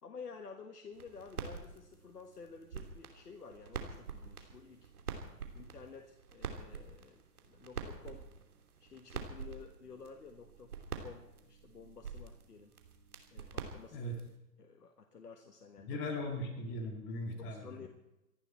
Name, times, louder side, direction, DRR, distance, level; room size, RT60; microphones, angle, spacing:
voice 1, 0.0-4.9 5.5-8.3 8.8-12.7 13.3-14.0 14.6-16.0 17.4-17.9, left 5 dB, 85° left, 4 dB, 1.7 m, -52 dB
sound 1, 0.9-14.4, right 5 dB, 70° right, 3.0 m, -46 dB
voice 2, 15.9-17.9, left 1 dB, 25° left, 3 dB, 2.6 m, -39 dB
26.0 x 11.5 x 4.4 m, 0.98 s
hypercardioid pair, 130°, 46 cm